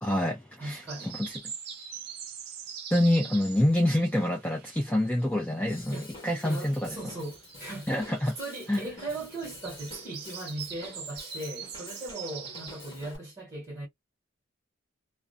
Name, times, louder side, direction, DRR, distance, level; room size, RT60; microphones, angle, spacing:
voice 1, 0.0-0.8 1.1-1.3 2.9-6.0 6.2-6.9 7.9-8.3 8.7-8.8, left 1 dB, 5° left, 0.4 m, -26 dB
voice 2, 0.6-1.2 5.9-6.1 6.4-7.9 8.4-13.9, right 1 dB, 20° right, 1.1 m, -38 dB
sound 1, 0.9-5.2 5.5-12.9, right 7 dB, 50° right, 0.6 m, -44 dB
Drum kit / Drum, 5.7-13.2, left 2 dB, 25° left, 1.1 m, -49 dB
2.5 x 2.1 x 2.5 m
head